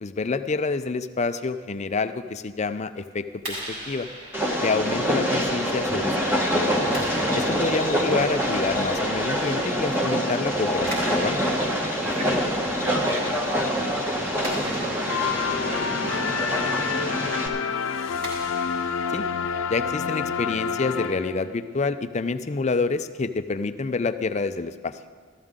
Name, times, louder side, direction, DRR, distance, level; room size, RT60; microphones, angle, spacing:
voice 1, 0.0-4.1 4.6-6.8 7.3-11.4 19.1-19.3 19.7-25.0, left 4 dB, 35° left, 11 dB, 0.5 m, -28 dB
Clapping, 3.3-20.0, right 1 dB, 50° right, 4.3 m, -41 dB
Train, 4.3-17.5, equal, 10° right, 1.4 m, -25 dB
voice 2, 12.0-13.9 14.6-17.2 17.5-17.8, right 1 dB, 80° right, -2 dB, 2.8 m, -37 dB
sound 1, 15.1-21.7, left 6 dB, 90° left, 0.6 m, -28 dB
14.5 x 13.5 x 3.7 m, 1.5 s
head